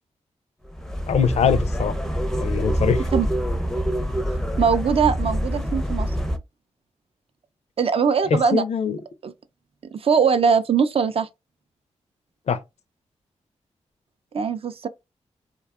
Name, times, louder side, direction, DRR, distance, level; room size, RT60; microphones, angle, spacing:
sound 1, 0.6-6.4, equal, 5° left, 0.5 m, -25 dB
voice 1, 1.1-2.0 2.4-3.1 8.3-9.0 12.5-12.6, left 6 dB, 60° left, 0.4 m, -22 dB
voice 2, 4.6-6.1 7.8-8.6 9.2-9.3 9.9-11.3 14.3-14.9, right 6 dB, 50° right, 0.4 m, -21 dB
2.7 x 2.3 x 2.3 m
supercardioid pair, 45°, 13 cm